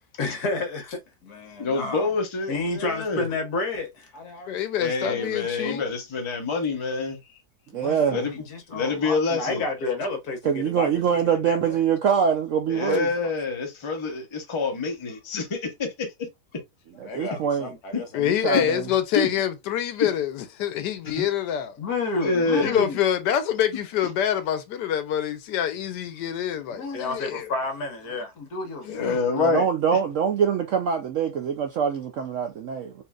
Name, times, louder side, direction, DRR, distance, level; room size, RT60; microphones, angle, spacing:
voice 1, 0.2-2.1 2.5-5.9 7.7-11.8 12.7-12.9 13.2-13.3 17.0-18.3 21.8-23.0 26.7-29.2, left 3 dB, 65° left, 1.6 m, -32 dB
voice 2, 1.6-3.3 4.8-7.2 8.1-8.3 8.7-9.6 12.7-16.1 17.9-18.0 18.5-18.6 19.1-19.3 20.0-20.1 21.2-21.3 22.2-22.8 28.9-29.7, left 4 dB, 25° left, 0.6 m, -26 dB
voice 3, 4.5-5.8 18.1-21.8 22.5-27.5 28.8-29.2, left 10 dB, 80° left, 1.2 m, -26 dB
voice 4, 7.7-8.2 10.4-13.1 17.0-17.7 18.2-18.9 29.3-33.0, right 7 dB, 70° right, 0.7 m, -24 dB
4.4 x 2.6 x 2.3 m
omnidirectional pair, 1.8 m